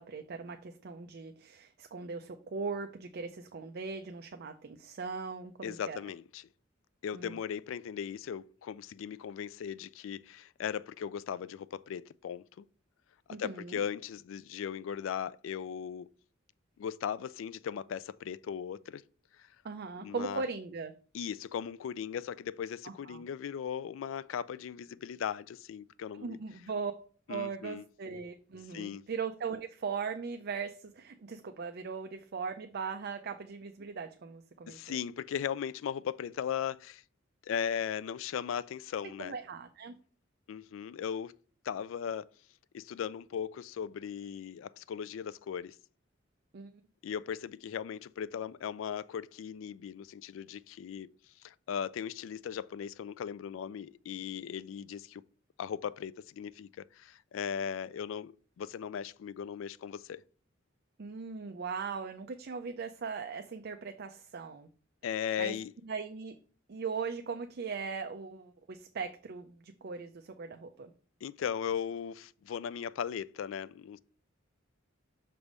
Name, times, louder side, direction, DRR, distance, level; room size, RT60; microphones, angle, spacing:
voice 1, 0.0-6.0 7.1-7.4 13.3-13.8 19.6-20.9 22.8-23.2 26.1-26.9 27.3-34.8 39.2-40.0 46.5-46.7 61.0-64.7 65.4-65.5 65.9-66.3 66.7-70.9, right 5 dB, 55° right, 0.5 m, -39 dB
voice 2, 5.6-6.5 7.0-12.7 13.4-16.1 16.8-19.0 19.4-19.5 20.0-20.4 21.1-26.4 27.3-27.8 28.7-29.0 34.7-37.0 37.4-39.3 40.5-41.3 41.6-42.3 42.7-45.8 47.0-51.1 51.4-55.2 55.6-60.2 65.0-65.7 71.2-74.0, left 8 dB, 70° left, 0.3 m, -38 dB
6.0 x 3.4 x 5.3 m
head